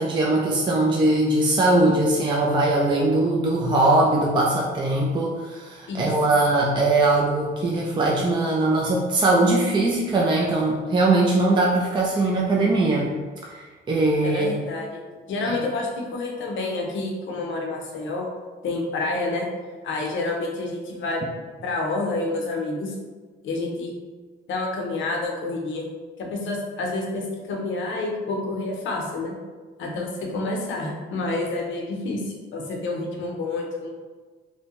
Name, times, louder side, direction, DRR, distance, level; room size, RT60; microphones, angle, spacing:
voice 1, 0.0-13.1 13.4-14.5 15.4-15.6, right 2 dB, 25° right, -2 dB, 0.4 m, -21 dB
voice 2, 14.2-15.0 15.3-18.3 18.6-19.5 19.8-21.2 21.6-23.0 23.4-23.9 24.5-25.9 26.2-29.4 29.8-33.9, left 2 dB, 70° left, 0 dB, 0.7 m, -28 dB
2.6 x 2.1 x 2.9 m, 1.4 s
cardioid pair, 90°, 20 cm